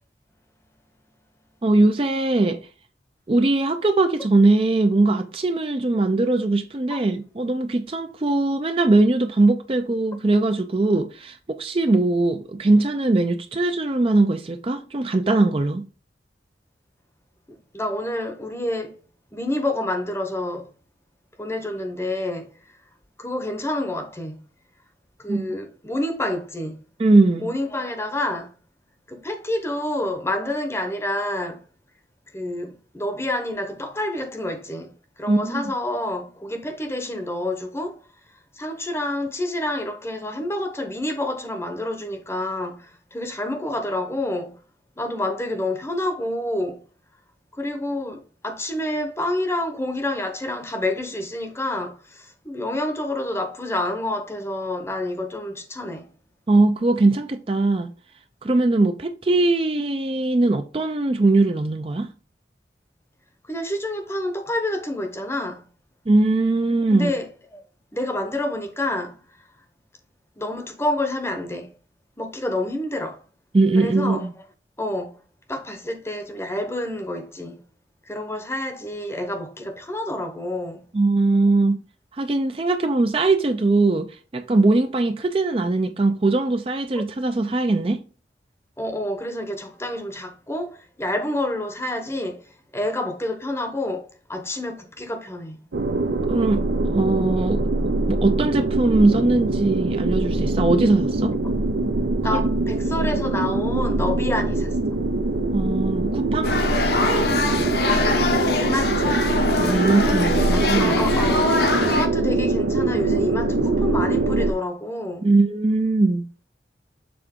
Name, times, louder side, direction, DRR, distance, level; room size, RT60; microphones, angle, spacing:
voice 1, 1.6-2.6 3.3-15.8 25.3-25.5 27.0-27.5 35.3-35.6 56.5-57.9 58.4-62.1 66.1-67.1 73.5-74.3 80.9-81.8 82.1-88.0 96.3-97.7 98.1-101.4 102.3-102.4 105.5-106.5 109.6-111.0 115.2-116.3, right 2 dB, 30° right, 0.4 m, -20 dB
voice 2, 17.5-19.0 19.3-20.7 21.4-22.5 23.2-24.3 25.2-26.8 27.4-28.5 29.1-31.6 32.3-34.9 35.2-38.0 38.5-44.6 45.0-46.8 47.5-56.1 63.5-65.7 66.9-67.6 67.9-69.2 70.4-71.7 72.2-73.2 73.7-74.3 74.8-75.2 75.5-77.6 78.1-80.8 88.8-95.6 102.2-104.9 108.5-109.2 110.4-115.3, left 1 dB, 15° left, 0.8 m, -28 dB
sound 1, 95.7-114.5, right 2 dB, 80° right, 0.7 m, -23 dB
sound 2, 106.4-112.1, left 3 dB, 60° left, 0.9 m, -23 dB
6.8 x 3.8 x 3.6 m
head